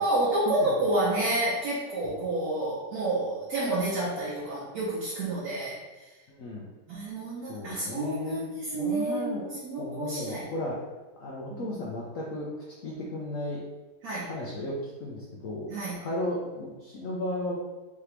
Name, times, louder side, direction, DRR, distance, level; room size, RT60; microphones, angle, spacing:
voice 1, 0.0-6.1 6.9-10.5 11.5-11.7 14.0-14.3 15.7-16.0, right 2 dB, 65° right, -7 dB, 1.3 m, -29 dB
voice 2, 6.3-6.7 7.5-8.5 8.7-9.4 9.8-10.8 11.2-12.5 12.8-13.6 14.3-15.7 16.0-17.6, left 1 dB, 60° left, -4 dB, 0.9 m, -34 dB
4.8 x 2.9 x 3.3 m, 1.2 s
omnidirectional pair, 1.8 m